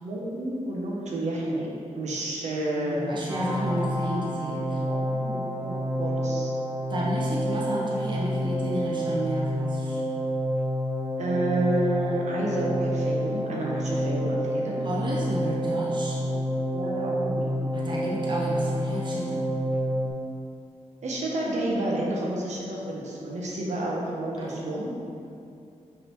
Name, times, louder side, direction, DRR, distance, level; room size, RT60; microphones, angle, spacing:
voice 1, 0.0-1.7 2.0-3.1 3.7-3.9 4.8-6.5 11.2-14.7 16.2-16.3 16.7-17.5 21.0-24.9, right 1 dB, 70° right, -3 dB, 1.1 m, -30 dB
voice 2, 2.8-4.8 6.9-10.0 14.8-16.2 17.7-19.4 24.4-24.7, right 1 dB, 40° right, -5 dB, 0.9 m, -31 dB
sound 1, 3.3-20.1, equal, 15° right, 0.7 m, -28 dB
5.4 x 4.1 x 4.6 m, 2.6 s
wide cardioid pair, 105°, 12 cm